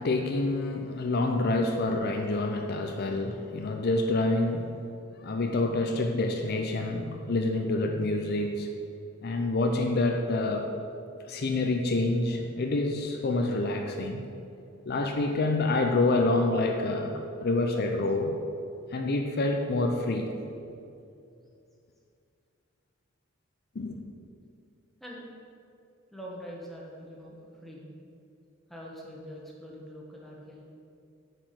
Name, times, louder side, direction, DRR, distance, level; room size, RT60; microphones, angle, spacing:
voice 1, 0.0-4.7 5.2-8.7 9.2-10.7 11.3-14.2 14.8-18.4 18.9-20.3 23.8-24.0, left 2 dB, 50° left, 4 dB, 0.5 m, -27 dB
voice 2, 26.1-27.9 28.7-30.6, equal, ahead, -4 dB, 1.3 m, -44 dB
8.8 x 4.9 x 5.8 m, 2.5 s
head